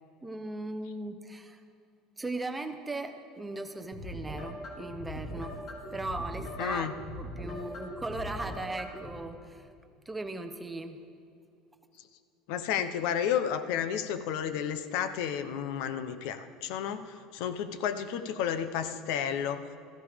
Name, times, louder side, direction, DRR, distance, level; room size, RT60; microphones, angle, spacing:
voice 1, 0.2-1.6 2.2-5.6 5.9-6.9 7.2-9.7 10.1-11.0, right 2 dB, 10° right, 7 dB, 0.8 m, -38 dB
sound 1, 3.9-9.1, left 1 dB, 40° left, 2.9 m, -41 dB
voice 2, 6.6-6.9 12.5-19.7, left 8 dB, 70° left, 11 dB, 0.8 m, -32 dB
16.0 x 14.5 x 3.5 m, 2.5 s
cardioid pair, 145°, 0 cm